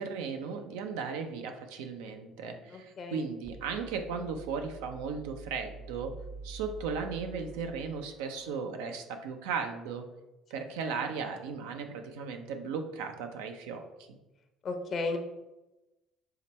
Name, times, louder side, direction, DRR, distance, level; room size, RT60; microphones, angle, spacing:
voice 1, 0.0-6.1 6.4-10.0 10.5-13.8, right 5 dB, 90° right, 5 dB, 0.5 m, -36 dB
voice 2, 2.7-3.2 10.6-10.7 14.6-15.2, left 3 dB, 50° left, 5 dB, 0.8 m, -34 dB
sound 1, 3.4-8.5, right 4 dB, 30° right, 0.4 m, -47 dB
5.7 x 2.2 x 4.1 m, 1.0 s
supercardioid pair, 90°, 0 cm